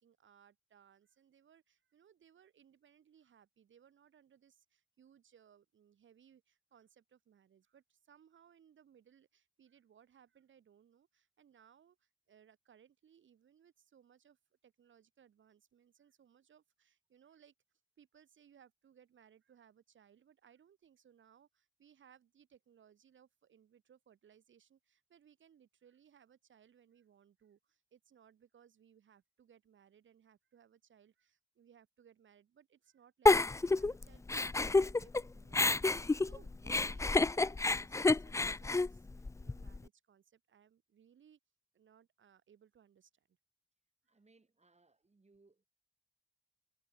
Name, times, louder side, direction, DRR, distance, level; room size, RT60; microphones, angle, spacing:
voice 1, 0.0-17.5 18.0-41.4 41.7-43.4, right 8 dB, 80° right, 3.5 m, -65 dB
Giggle, 33.3-35.2 35.5-39.8, left 3 dB, 15° left, 0.4 m, -29 dB
voice 2, 44.1-45.7, right 3 dB, 35° right, 3.3 m, -68 dB
cardioid pair, 45°, 19 cm